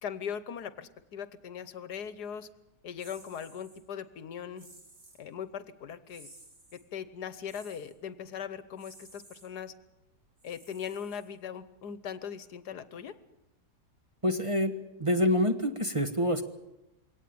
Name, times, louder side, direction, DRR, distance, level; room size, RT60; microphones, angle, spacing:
voice 1, 0.0-2.5 2.8-4.7 5.2-6.3 6.7-9.7 10.4-13.1, left 8 dB, 75° left, 14 dB, 1.5 m, -40 dB
sound 1, 3.0-3.8 4.6-5.2 6.1-6.9 7.4-7.9 8.8-9.5 10.4-11.5, right 2 dB, 60° right, 4.7 m, -55 dB
voice 2, 14.2-14.7 15.0-16.4, equal, 20° right, 5 dB, 1.2 m, -26 dB
22.5 x 18.0 x 8.7 m, 0.94 s
omnidirectional pair, 1.8 m